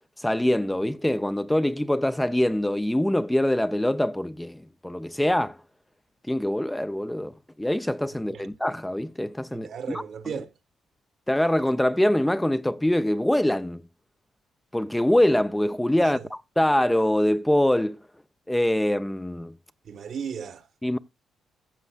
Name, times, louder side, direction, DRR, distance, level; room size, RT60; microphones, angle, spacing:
voice 1, 0.2-5.6 6.3-10.0 11.3-13.8 14.7-18.0 18.5-19.5 20.8-21.0, left 1 dB, 5° left, 0.4 m, -24 dB
voice 2, 9.5-10.5 16.0-16.3 19.8-20.7, right 7 dB, 60° right, 1.1 m, -36 dB
15.0 x 6.9 x 2.3 m
cardioid pair, 90°, 0 cm